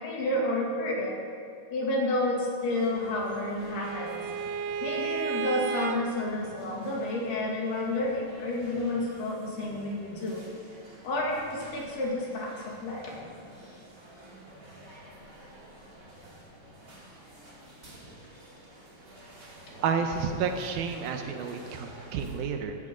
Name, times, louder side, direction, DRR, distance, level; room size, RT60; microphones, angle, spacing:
voice 1, 0.0-1.2 1.7-4.2 4.8-10.4 11.0-13.1, left 1 dB, 80° left, -3 dB, 4.4 m, -30 dB
sound 1, 2.6-22.4, right 1 dB, 25° right, 2.5 m, -50 dB
Bowed string instrument, 2.8-6.0, right 6 dB, 90° right, 2.8 m, -33 dB
voice 2, 19.8-22.8, right 6 dB, 75° right, 5 dB, 2.6 m, -30 dB
16.0 x 15.5 x 3.8 m, 2.3 s
omnidirectional pair, 4.5 m